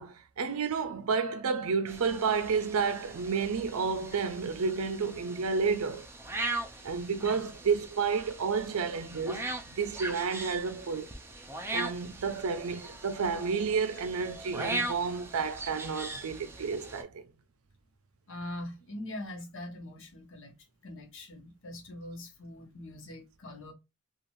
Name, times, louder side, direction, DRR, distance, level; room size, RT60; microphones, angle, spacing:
voice 1, 0.0-6.1 6.8-11.1 11.7-17.3, right 5 dB, 70° right, 0.5 m, -31 dB
sound 1, 1.9-17.0, right 2 dB, 10° right, 0.4 m, -40 dB
voice 2, 18.3-20.5 20.8-23.7, left 1 dB, 60° left, 1.0 m, -42 dB
3.1 x 2.4 x 2.6 m
head